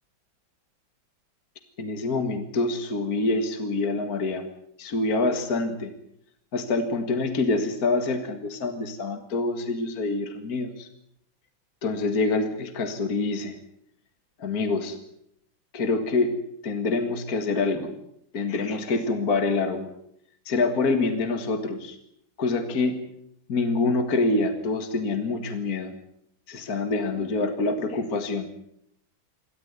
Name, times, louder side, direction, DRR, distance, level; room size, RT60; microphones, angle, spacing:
voice 1, 1.8-4.4 4.8-5.9 6.5-10.9 11.8-13.6 14.4-15.0 15.7-16.4 16.6-17.9 18.3-19.9 20.5-22.0 22.4-23.0 23.5-25.9 26.5-28.5, left 3 dB, 50° left, 8 dB, 2.3 m, -26 dB
28.0 x 13.0 x 9.7 m, 0.71 s
omnidirectional pair, 2.1 m